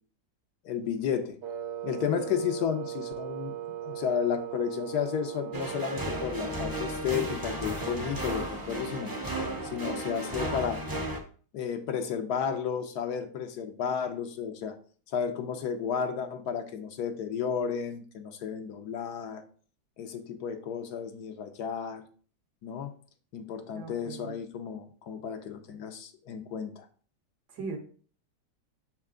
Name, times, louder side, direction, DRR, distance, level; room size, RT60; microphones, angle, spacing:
voice 1, 0.6-1.4 1.8-3.5 3.8-9.1 9.7-10.8 11.5-14.7 15.1-19.4 20.0-22.0 22.6-22.9 23.3-26.8, left 7 dB, 70° left, 7 dB, 1.2 m, -32 dB
Wind instrument woodwind instrument, 1.4-7.2, right 12 dB, 85° right, 1.6 m, -38 dB
sound 1, 5.5-11.2, right 1 dB, 20° right, 0.6 m, -34 dB
voice 2, 23.7-24.4 27.5-27.8, right 4 dB, 70° right, 3 dB, 1.8 m, -39 dB
6.6 x 4.6 x 3.7 m, 0.43 s
omnidirectional pair, 1.8 m